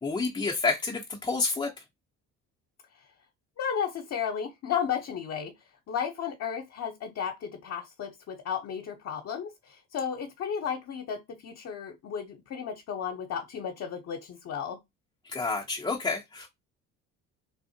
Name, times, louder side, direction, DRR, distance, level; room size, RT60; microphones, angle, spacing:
voice 1, 0.0-1.8 15.2-16.5, left 4 dB, 15° left, 0.5 m, -29 dB
voice 2, 3.6-5.5 5.9-14.8, left 7 dB, 50° left, 0.7 m, -33 dB
3.5 x 2.0 x 2.7 m
supercardioid pair, 80°, 33 cm